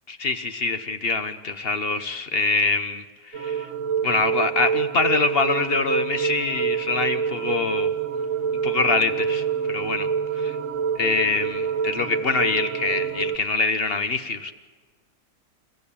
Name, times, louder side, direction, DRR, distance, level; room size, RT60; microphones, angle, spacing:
voice 1, 0.1-3.7 4.0-7.9 8.6-10.1 10.3-10.6 11.0-14.5, left 4 dB, 40° left, 10 dB, 1.1 m, -25 dB
sound 1, 3.3-13.4, right 7 dB, 50° right, 1.7 m, -27 dB
29.5 x 15.5 x 8.6 m, 1.5 s
omnidirectional pair, 1.8 m